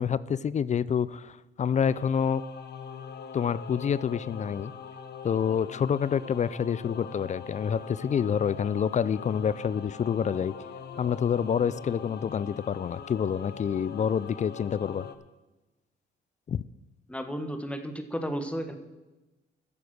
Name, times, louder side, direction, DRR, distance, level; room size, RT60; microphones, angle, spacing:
voice 1, 0.0-2.4 3.3-4.7 5.2-10.5 11.0-15.1 16.5-16.6, left 7 dB, 35° left, 19 dB, 0.4 m, -27 dB
Singing / Musical instrument, 1.8-15.2, left 6 dB, 55° left, 1.1 m, -42 dB
voice 2, 17.1-18.7, equal, 5° left, 7 dB, 1.5 m, -33 dB
13.0 x 7.1 x 6.4 m, 1.1 s
cardioid pair, 90°, 20 cm